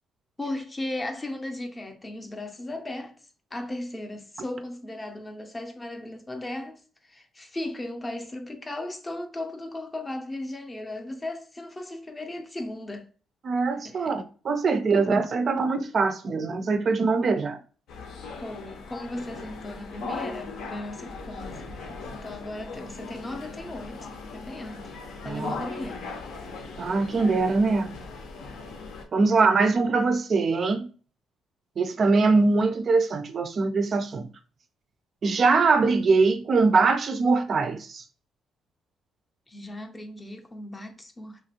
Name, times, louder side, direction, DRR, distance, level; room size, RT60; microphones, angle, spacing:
voice 1, 0.4-3.2 3.5-13.1 13.8-14.2 18.4-21.6 22.2-24.8 25.2-26.2 29.2-29.7 39.5-41.4, left 1 dB, 20° left, 0.5 m, -36 dB
voice 2, 13.4-17.6 25.2-25.5 26.8-28.0 29.1-30.9 31.8-34.3 35.2-38.0, right 4 dB, 45° right, 0.3 m, -22 dB
sound 1, 17.9-29.0, left 3 dB, 75° left, 0.6 m, -38 dB
3.0 x 2.4 x 2.8 m
cardioid pair, 110°, 0 cm